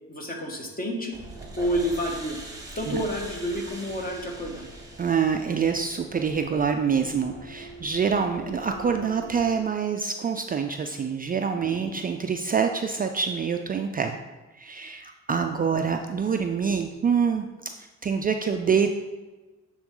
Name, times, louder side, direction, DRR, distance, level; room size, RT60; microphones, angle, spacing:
voice 1, 0.1-1.2 1.6-2.4 2.7-4.7 11.7-12.0, equal, 30° left, 1 dB, 1.4 m, -29 dB
sound 1, 1.1-9.6, right 2 dB, 10° right, 1.2 m, -42 dB
voice 2, 5.0-14.2 14.5-17.5 17.8-18.9, right 6 dB, 30° right, 5 dB, 0.4 m, -26 dB
8.7 x 3.9 x 3.7 m, 1.2 s
cardioid pair, 90°, 30 cm